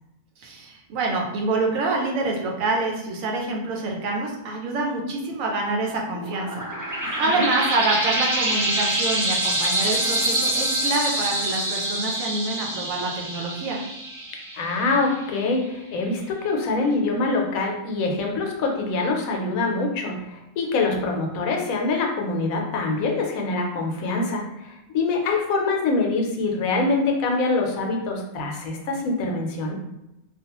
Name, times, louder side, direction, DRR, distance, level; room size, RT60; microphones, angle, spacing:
voice 1, 0.4-13.8, right 3 dB, 75° right, 0 dB, 1.0 m, -26 dB
sound 1, 6.1-15.3, right 1 dB, 25° right, 0.4 m, -26 dB
voice 2, 7.0-7.5 14.5-29.7, left 3 dB, 80° left, 1 dB, 1.0 m, -25 dB
2.4 x 2.3 x 2.8 m, 0.91 s
omnidirectional pair, 1.5 m